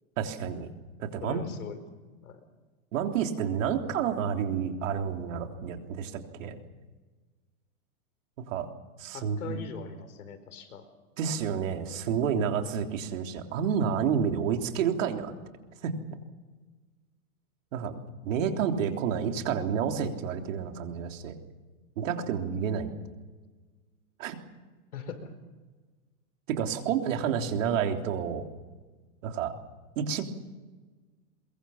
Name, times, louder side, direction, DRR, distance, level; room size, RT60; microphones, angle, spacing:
voice 1, 0.2-0.7 1.0-1.4 2.9-6.6 8.4-8.7 9.0-9.6 11.2-15.3 15.8-15.9 17.7-21.4 22.0-22.9 24.2-24.4 26.5-28.4 29.2-29.5 30.0-30.2, right 7 dB, 60° right, 4 dB, 3.5 m, -29 dB
voice 2, 1.2-2.4 9.1-10.8 24.9-25.3, left 6 dB, 80° left, 10 dB, 4.6 m, -41 dB
23.0 x 23.0 x 7.3 m, 1.3 s
supercardioid pair, 155°, 43 cm